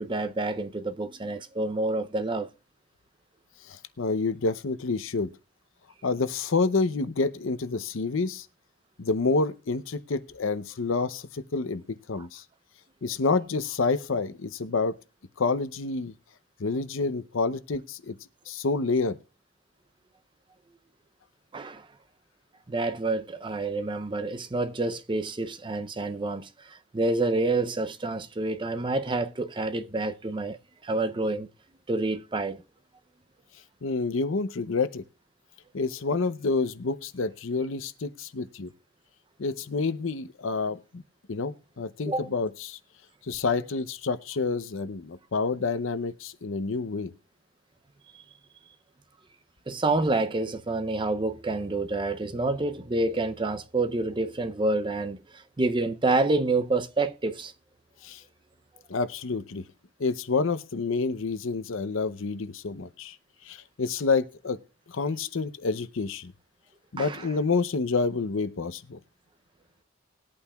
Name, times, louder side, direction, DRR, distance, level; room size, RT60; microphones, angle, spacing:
voice 1, 0.0-2.5 12.2-12.3 21.5-21.9 22.7-30.6 30.8-31.5 31.9-32.6 42.1-42.3 48.1-48.2 49.7-57.5 67.0-67.3, right 2 dB, 25° right, 0.5 m, -28 dB
voice 2, 3.6-5.3 6.0-8.5 9.0-12.4 13.0-15.0 15.4-16.1 16.6-18.2 18.5-19.2 33.8-35.0 35.7-38.7 39.4-41.0 41.3-42.8 43.3-47.1 58.0-58.2 58.9-59.6 60.0-63.2 63.4-64.6 64.9-66.3 66.9-69.0, left 4 dB, 70° left, 0.7 m, -28 dB
20.5 x 8.5 x 2.3 m
head